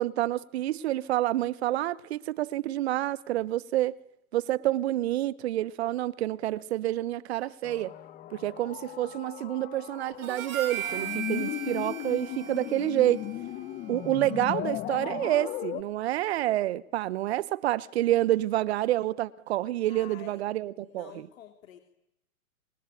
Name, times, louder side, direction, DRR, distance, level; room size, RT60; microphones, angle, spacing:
voice 1, 0.0-4.0 4.3-7.9 8.3-13.2 13.9-21.3, right 14 dB, 45° right, 1.1 m, -28 dB
sound 1, 7.6-15.8, left 14 dB, 20° left, 1.2 m, -37 dB
Harmonica, 10.2-14.7, right 11 dB, 70° right, 4.9 m, -38 dB
voice 2, 11.3-12.0 19.9-20.4 20.7-21.8, left 10 dB, 65° left, 3.1 m, -49 dB
26.0 x 24.5 x 9.2 m
hypercardioid pair, 140°, 43 cm